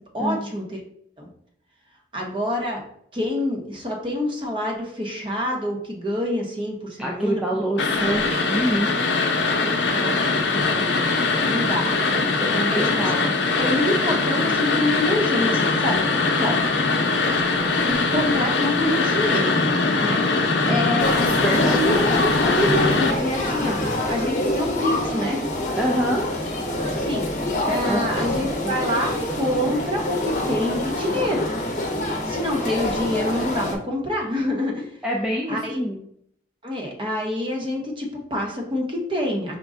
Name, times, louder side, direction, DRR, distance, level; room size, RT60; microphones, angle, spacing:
voice 1, 0.1-0.8 1.2-1.3 2.1-2.8 3.1-7.4 9.6-12.0 12.7-13.3 13.5-16.0 16.4-16.6 17.8-19.5 20.0-23.8 24.1-25.4 26.8-27.3 27.7-31.5 32.2-34.9 35.5-35.8 36.6-39.6, left 1 dB, 30° right, 0 dB, 0.8 m, -26 dB
voice 2, 7.0-8.9 11.9-13.4 17.6-17.9 20.6-20.9 21.4-21.9 25.8-26.2 27.9-28.0 28.6-28.8 35.0-36.0, equal, 5° right, -3 dB, 0.4 m, -26 dB
sound 1, 7.8-23.1, left 3 dB, 85° left, 0.6 m, -22 dB
sound 2, 21.0-33.7, left 1 dB, 45° left, 0.7 m, -26 dB
5.1 x 2.2 x 3.6 m, 0.68 s
head